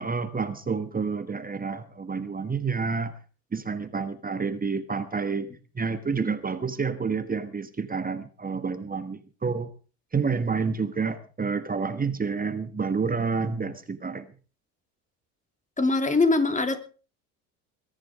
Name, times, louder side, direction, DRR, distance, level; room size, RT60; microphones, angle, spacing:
voice 1, 0.0-3.1 3.5-5.5 5.7-9.7 10.1-14.3, right 5 dB, 20° right, 11 dB, 1.4 m, -29 dB
voice 2, 15.8-16.8, left 3 dB, 15° left, 9 dB, 2.8 m, -22 dB
21.5 x 10.5 x 4.8 m, 0.38 s
hypercardioid pair, 75°, 45 cm